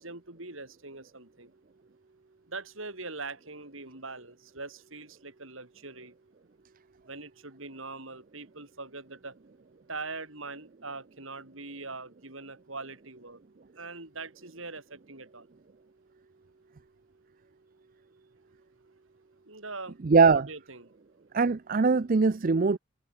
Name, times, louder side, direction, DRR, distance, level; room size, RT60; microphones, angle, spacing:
voice 1, 0.0-1.5 2.5-6.1 7.0-9.4 9.9-13.4 13.7-15.5 19.5-20.0 20.3-20.9, right 3 dB, 70° right, 7.1 m, -42 dB
voice 2, 20.0-20.5 21.3-22.8, right 4 dB, 40° right, 0.5 m, -21 dB
head